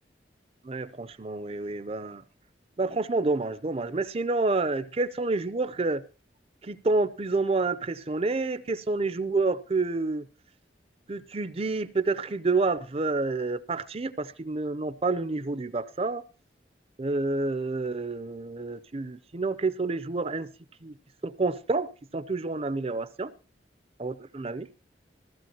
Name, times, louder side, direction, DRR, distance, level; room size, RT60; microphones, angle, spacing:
voice 1, 0.6-2.2 2.8-6.0 6.6-10.2 11.1-16.2 17.0-20.5 20.8-21.0 21.2-23.3 24.0-24.7, right 3 dB, 35° right, 15 dB, 0.6 m, -28 dB
15.5 x 15.0 x 2.9 m, 0.32 s
head